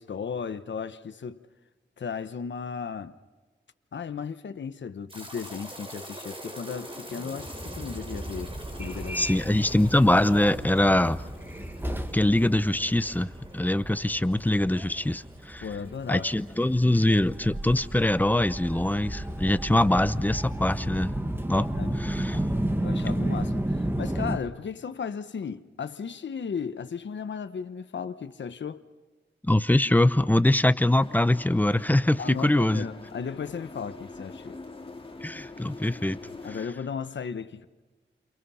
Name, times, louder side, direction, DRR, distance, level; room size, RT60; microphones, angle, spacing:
voice 1, 0.0-1.4 2.0-3.2 3.9-8.5 8.8-9.3 15.6-16.3 21.8-22.2 22.8-28.8 32.2-34.6 36.4-37.6, left 6 dB, 70° left, 1.1 m, -35 dB
sound 1, 5.1-17.4 17.7-17.8 18.4-18.5, right 1 dB, 30° right, 4.0 m, -41 dB
Subway metro underground, 8.8-24.4, right 1 dB, 10° right, 1.5 m, -33 dB
voice 2, 9.1-11.2 12.1-15.7 16.1-21.1 21.5-22.4 29.4-32.9 35.2-36.2, left 1 dB, 10° left, 0.8 m, -23 dB
sound 2, 31.0-36.7, left 3 dB, 30° left, 2.1 m, -44 dB
29.5 x 29.0 x 5.7 m
wide cardioid pair, 115°, 19 cm